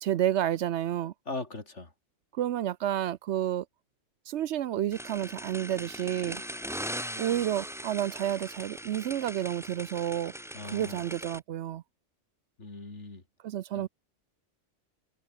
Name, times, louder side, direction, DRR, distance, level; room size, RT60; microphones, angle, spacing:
voice 1, 0.0-1.1 2.3-3.7 4.3-6.4 7.2-10.3 10.6-11.8 13.4-13.9, right 11 dB, 70° right, 0.9 m, -30 dB
voice 2, 1.3-1.9 7.1-7.3 10.5-11.0 12.6-13.2 13.7-13.9, left 3 dB, 70° left, 4.0 m, -40 dB
sound 1, 4.9-11.4, equal, ahead, 1.8 m, -40 dB
omnidirectional pair, 1.3 m